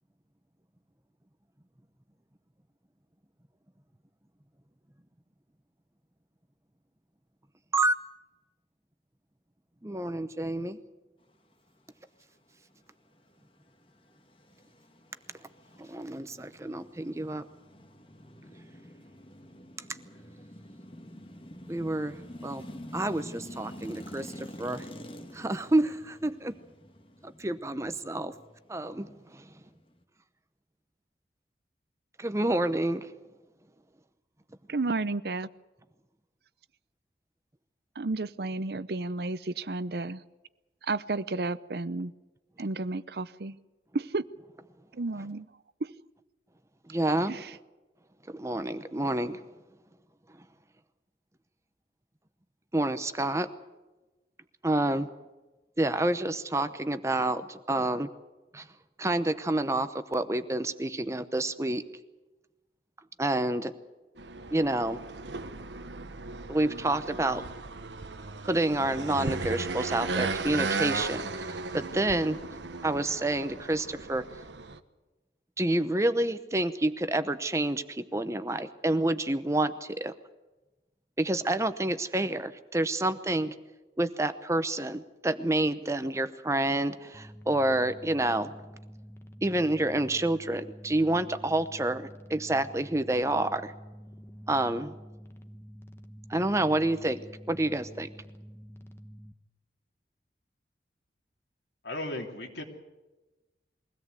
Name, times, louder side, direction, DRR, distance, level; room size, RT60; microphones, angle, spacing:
voice 1, 9.8-10.8 15.8-17.5 21.7-22.1 22.4-22.6 22.9-24.9 25.3-26.5 27.2-28.3 28.7-29.6 32.2-33.1 45.1-45.3 46.9-47.5 48.3-49.4 50.3-50.4 52.7-53.5 54.6-55.1 55.8-58.1 58.5-58.7 59.0-61.8 63.2-63.7 64.5-65.0 66.5-67.4 68.4-72.4 72.8-74.4 75.6-80.1 81.2-83.6 84.0-88.5 89.4-93.7 94.5-94.9 96.3-97.2 97.5-98.1, right 1 dB, 15° right, 11 dB, 0.8 m, -28 dB
sound 1, 13.3-30.0, equal, 30° left, 1.5 m, -48 dB
voice 2, 34.7-35.5 38.0-40.2 40.8-42.1 42.6-43.5 43.9-44.2 44.9-45.5 45.8-45.9 47.3-47.4, right 3 dB, 60° right, 16 dB, 0.7 m, -32 dB
sound 2, 64.2-74.8, right 3 dB, 90° right, 1.1 m, -36 dB
sound 3, 87.1-99.3, equal, 15° left, 1.2 m, -48 dB
voice 3, 101.8-102.6, left 1 dB, 80° left, 3 dB, 3.2 m, -36 dB
22.5 x 17.0 x 8.2 m, 1.1 s
head